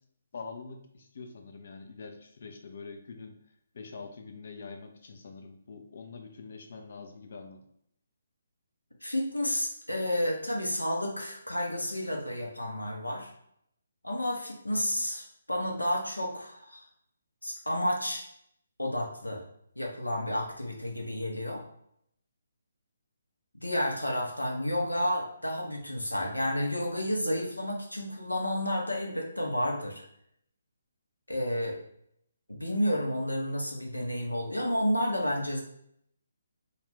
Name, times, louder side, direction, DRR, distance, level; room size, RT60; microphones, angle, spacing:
voice 1, 0.3-3.4 3.7-7.6, left 4 dB, 50° left, 5 dB, 0.5 m, -45 dB
voice 2, 9.0-13.3 14.0-16.9 17.4-18.2 18.8-19.4 19.8-21.6 23.5-30.0 31.3-31.8 32.5-35.6, left 1 dB, 85° left, 0 dB, 0.7 m, -31 dB
2.4 x 2.3 x 3.4 m, 0.71 s
figure-of-eight pair, 140°, 0 cm